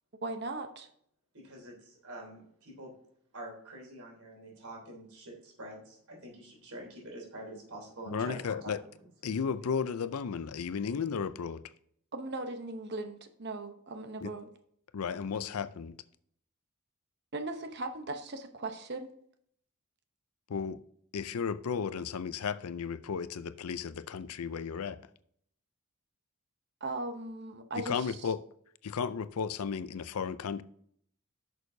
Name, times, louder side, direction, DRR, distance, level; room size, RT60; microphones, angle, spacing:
voice 1, 0.2-0.9 12.1-14.5 17.3-19.1 26.8-28.3, right 2 dB, 50° right, 0.8 m, -38 dB
voice 2, 1.3-2.9 3.3-9.1, right 1 dB, 80° right, 3.5 m, -46 dB
voice 3, 8.1-8.8 9.2-11.6 14.2-14.3 14.9-15.9 20.5-20.8 21.1-25.0 27.8-28.4 28.8-30.6, left 6 dB, 80° left, 0.5 m, -34 dB
11.0 x 6.4 x 2.7 m
head